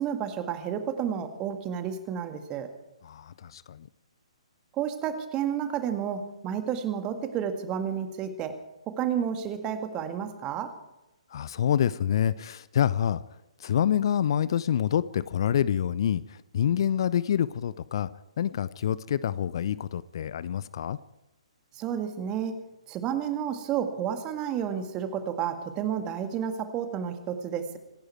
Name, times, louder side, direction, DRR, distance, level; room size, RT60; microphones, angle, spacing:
voice 1, 0.0-2.7 4.7-10.7 21.7-22.6 22.9-27.8, right 8 dB, 20° right, 1.9 m, -31 dB
voice 2, 3.0-3.9 11.3-13.2 13.6-18.1 18.4-21.0, left 9 dB, 45° left, 0.6 m, -27 dB
26.5 x 11.5 x 4.7 m
figure-of-eight pair, 125°, 3 cm